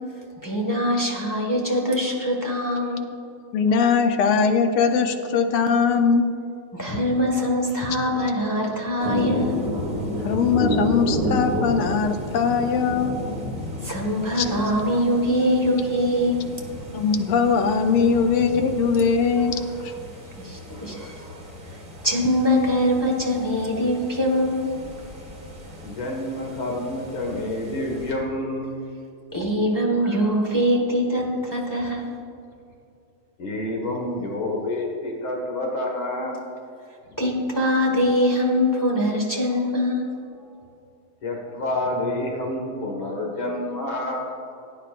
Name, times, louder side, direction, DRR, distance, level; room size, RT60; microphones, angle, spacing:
voice 1, 0.4-3.1 6.7-9.6 13.8-16.5 18.0-18.1 19.6-19.7 20.4-21.4 22.0-24.7 29.3-32.2 37.2-40.1, equal, 10° left, -2 dB, 1.0 m, -23 dB
voice 2, 3.5-6.3 10.2-13.2 14.4-14.5 16.9-19.5, left 5 dB, 85° left, 6 dB, 1.7 m, -20 dB
sound 1, 9.0-28.1, equal, 25° right, 1.6 m, -32 dB
voice 3, 25.8-28.7 33.4-36.4 37.1-37.2 41.2-44.3, left 1 dB, 70° left, -1 dB, 2.5 m, -28 dB
17.5 x 9.5 x 2.5 m, 2.5 s
omnidirectional pair, 2.4 m